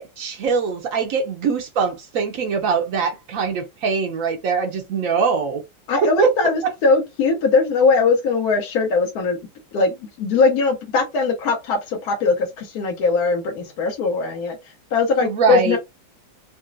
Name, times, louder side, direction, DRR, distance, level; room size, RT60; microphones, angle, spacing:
voice 1, 0.0-5.6 6.2-6.3 15.2-15.8, right 5 dB, 85° right, 0.7 m, -22 dB
voice 2, 5.9-9.4 9.7-14.6 14.9-15.8, left 4 dB, 65° left, 1.1 m, -20 dB
3.9 x 2.1 x 2.5 m
omnidirectional pair, 2.0 m